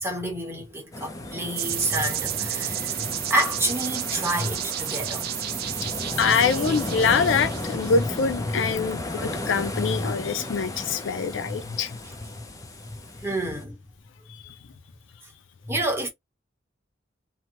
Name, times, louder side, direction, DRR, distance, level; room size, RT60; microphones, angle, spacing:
voice 1, 0.0-5.3 5.8-5.9 8.5-8.6 9.7-10.1 11.5-11.6 12.9-13.0 13.2-13.8 15.6-16.1, right 1 dB, 15° right, 1.0 m, -29 dB
sound 1, 0.9-13.6, left 1 dB, 15° left, 0.5 m, -34 dB
sound 2, 1.6-8.3, right 13 dB, 50° right, 0.3 m, -32 dB
voice 2, 6.2-11.9 14.3-14.6, left 5 dB, 70° left, 0.4 m, -24 dB
2.7 x 2.2 x 2.9 m
head